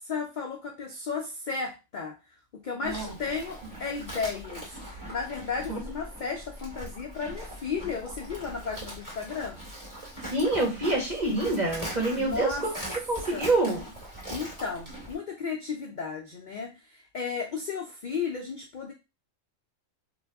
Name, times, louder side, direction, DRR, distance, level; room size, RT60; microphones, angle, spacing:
voice 1, 0.0-2.2 2.5-9.6 12.1-12.7 13.3-13.4 14.3-18.9, left 5 dB, 65° left, 1 dB, 0.4 m, -34 dB
Livestock farm animals working animals, 2.8-15.2, right 1 dB, 15° right, 2.0 m, -41 dB
voice 2, 10.3-12.7 13.1-13.8, right 2 dB, 35° right, -2 dB, 1.5 m, -26 dB
3.3 x 2.3 x 3.4 m, 0.27 s
omnidirectional pair, 1.4 m